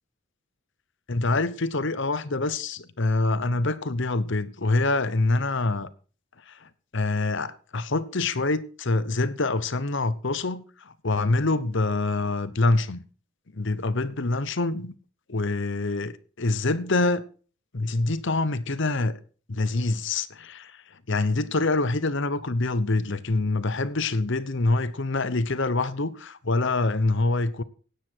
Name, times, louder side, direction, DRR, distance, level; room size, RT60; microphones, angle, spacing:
voice 1, 1.1-5.9 6.5-13.0 13.5-14.9 15.3-17.2 17.7-19.2 19.5-27.6, left 2 dB, 55° left, 0.9 m, -25 dB
16.5 x 9.7 x 4.6 m
head